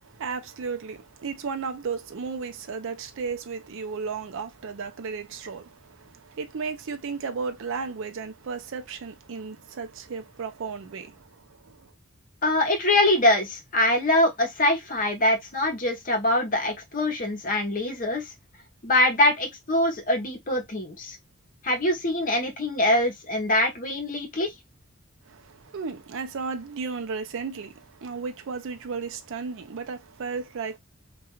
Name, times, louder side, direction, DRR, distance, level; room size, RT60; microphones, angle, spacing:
voice 1, 0.0-11.9 25.2-30.8, right 5 dB, 65° right, 0.4 m, -34 dB
voice 2, 12.4-18.3 18.8-21.2 21.6-24.5, left 1 dB, 40° left, 0.8 m, -23 dB
2.3 x 2.3 x 2.9 m
head